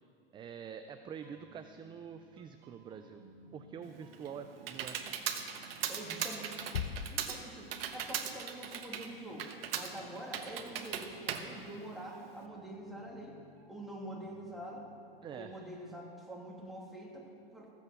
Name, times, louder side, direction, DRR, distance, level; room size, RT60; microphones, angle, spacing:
voice 1, 0.3-3.2 3.5-5.0 15.2-15.5, right 7 dB, 15° right, 8 dB, 0.4 m, -46 dB
sound 1, 1.0-7.7 9.6-16.1, right 2 dB, 50° right, 2.4 m, -61 dB
Computer keyboard, 3.8-12.4, right 8 dB, 70° right, 1.3 m, -39 dB
voice 2, 5.9-6.6 7.1-13.4 13.7-14.9 15.3-17.7, right 1 dB, ahead, -4 dB, 2.7 m, -46 dB
Bass drum, 6.7-8.1, left 8 dB, 75° left, 0.8 m, -40 dB
14.5 x 8.3 x 6.9 m, 2.4 s
hypercardioid pair, 115°, 30 cm